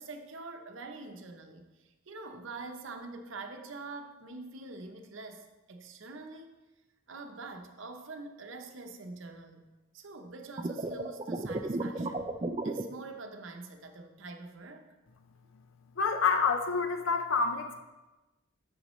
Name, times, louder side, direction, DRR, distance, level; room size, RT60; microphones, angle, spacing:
voice 1, 0.0-6.5 7.1-9.7 9.9-12.3 12.6-14.9, right 3 dB, 65° right, 5 dB, 0.7 m, -45 dB
sound 1, 10.6-12.8, right 2 dB, 25° right, 0.4 m, -33 dB
voice 2, 16.0-17.8, left 5 dB, 70° left, 6 dB, 0.6 m, -28 dB
8.1 x 6.4 x 3.1 m, 1.1 s
head